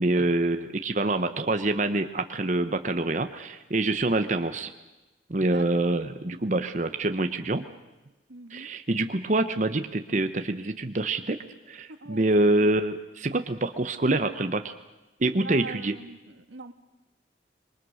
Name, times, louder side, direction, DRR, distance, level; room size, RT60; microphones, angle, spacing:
voice 1, 0.0-4.7 5.3-7.6 8.5-11.4 11.7-14.7 15.2-15.9, right 2 dB, 40° right, 8 dB, 0.9 m, -26 dB
voice 2, 5.4-6.0 8.3-8.7 11.9-12.3 15.3-16.7, right 3 dB, 90° right, 9 dB, 1.5 m, -42 dB
26.5 x 23.0 x 6.4 m, 1.1 s
head